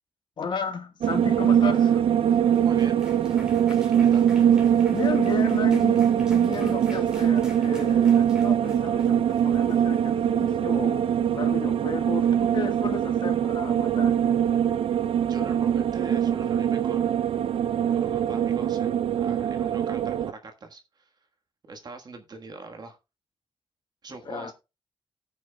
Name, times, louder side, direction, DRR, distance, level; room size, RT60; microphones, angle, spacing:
voice 1, 0.4-2.0 4.9-14.6 24.2-24.5, left 6 dB, 50° left, 1.4 m, -34 dB
sound 1, 1.0-20.3, right 9 dB, 70° right, 0.4 m, -22 dB
sound 2, 2.1-10.4, equal, 10° right, 2.3 m, -50 dB
voice 2, 2.6-3.1 3.7-4.5 15.2-17.5 17.9-21.1 21.7-23.0 24.0-24.5, right 3 dB, 45° right, 1.4 m, -42 dB
18.0 x 6.2 x 2.2 m
wide cardioid pair, 170°, 10 cm